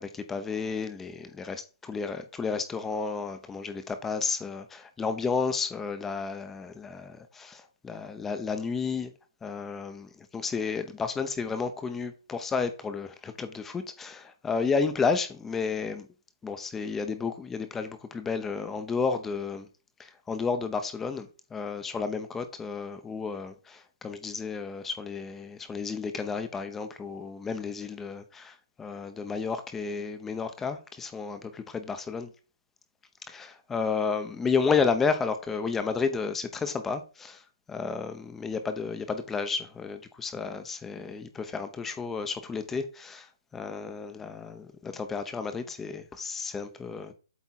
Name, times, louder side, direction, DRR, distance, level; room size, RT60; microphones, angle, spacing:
voice 1, 0.0-9.1 9.4-16.1 16.4-19.7 20.0-32.3 33.3-37.4 37.7-47.1, left 5 dB, 10° left, 0.8 m, -32 dB
8.3 x 3.5 x 4.2 m
hypercardioid pair, 145°, 2 cm